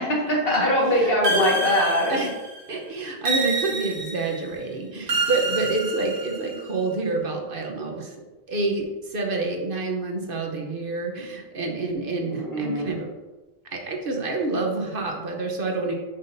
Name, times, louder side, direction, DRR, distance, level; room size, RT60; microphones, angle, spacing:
voice 1, 0.0-2.2 12.3-12.9, equal, 65° left, -3 dB, 1.8 m, -22 dB
sound 1, 1.2-2.6 3.2-4.4 5.1-6.6, right 3 dB, 85° right, 1.3 m, -27 dB
voice 2, 2.7-8.1 8.5-13.1 13.7-15.9, right 3 dB, 60° right, 1 dB, 1.1 m, -28 dB
7.5 x 6.1 x 2.7 m, 1.2 s
omnidirectional pair, 1.1 m